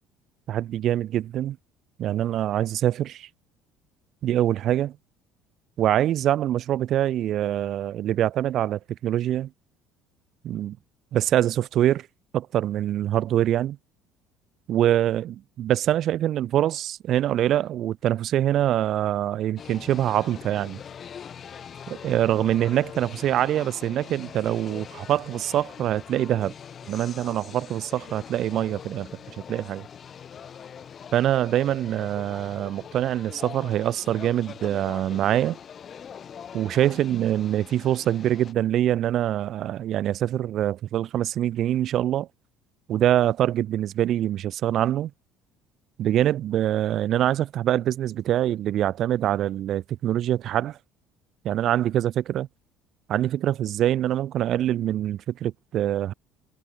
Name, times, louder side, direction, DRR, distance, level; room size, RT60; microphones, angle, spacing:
voice 1, 0.5-1.6 2.0-3.3 4.2-4.9 5.8-9.5 10.4-10.8 11.1-12.1 12.3-13.8 14.7-20.8 21.9-26.5 26.9-29.1 29.5-29.9 31.1-35.6 36.5-42.3 42.9-45.1 46.0-50.8 51.4-52.5 53.1-56.1, right 12 dB, 55° right, 0.5 m, -24 dB
sound 1, 19.6-38.5, left 8 dB, 45° left, 4.8 m, -42 dB
hypercardioid pair, 65°, 0 cm